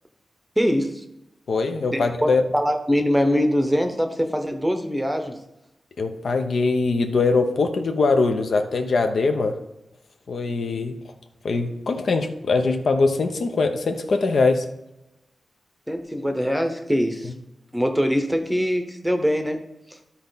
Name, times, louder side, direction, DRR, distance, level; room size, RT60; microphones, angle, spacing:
voice 1, 0.6-1.0 1.9-5.3 15.9-17.3 17.7-19.6, equal, ahead, 6 dB, 0.8 m, -23 dB
voice 2, 1.5-2.4 6.0-9.5 10.3-11.0 11.4-14.6, left 3 dB, 65° left, 5 dB, 0.8 m, -22 dB
12.5 x 4.2 x 4.0 m, 0.90 s
wide cardioid pair, 140°, 0 cm